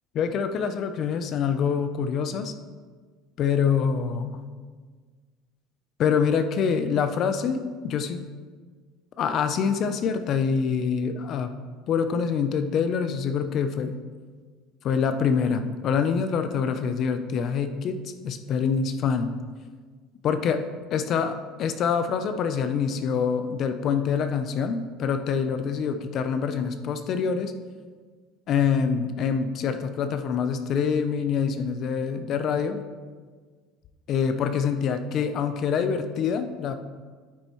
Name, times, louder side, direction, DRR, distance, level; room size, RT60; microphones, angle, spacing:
voice 1, 0.1-2.5 3.4-4.4 6.0-8.2 9.2-11.5 11.9-14.0 14.8-18.0 18.2-19.3 20.2-20.6 20.9-27.5 28.5-32.8 34.1-36.7, left 6 dB, 45° left, 9 dB, 0.6 m, -25 dB
9.9 x 8.6 x 3.1 m, 1.5 s
cardioid pair, 135°, 0 cm